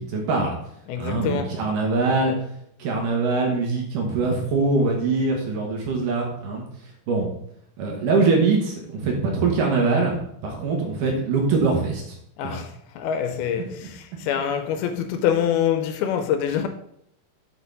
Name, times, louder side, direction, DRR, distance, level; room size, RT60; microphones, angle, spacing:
voice 1, 0.1-0.5 1.0-2.3 2.8-6.6 7.1-7.3 7.8-12.2 12.4-12.6, right 3 dB, 65° right, 2.5 m, -23 dB
voice 2, 0.9-1.5 12.4-16.7, left 9 dB, 85° left, 2.5 m, -25 dB
8.1 x 4.8 x 5.3 m
omnidirectional pair, 4.6 m